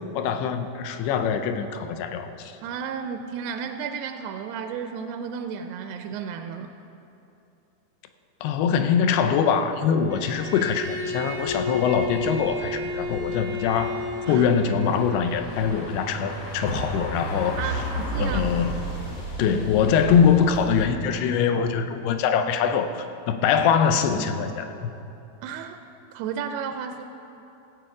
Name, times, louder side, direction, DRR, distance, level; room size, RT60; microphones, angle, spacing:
voice 1, 0.1-2.5 8.4-13.9 14.3-17.8 18.2-18.8 19.4-22.9 23.3-24.9, left 7 dB, 80° left, 8 dB, 2.6 m, -23 dB
voice 2, 2.6-6.7 14.3-14.5 17.6-18.5 19.4-19.6 24.1-24.4 25.4-25.8 26.1-27.0, right 7 dB, 85° right, 6 dB, 2.5 m, -33 dB
Bowed string instrument, 10.1-14.9, left 2 dB, 5° right, 1.2 m, -32 dB
sound 1, 11.4-20.8, right 1 dB, 60° left, 3.4 m, -34 dB
15.5 x 8.0 x 4.8 m, 2.9 s
omnidirectional pair, 4.7 m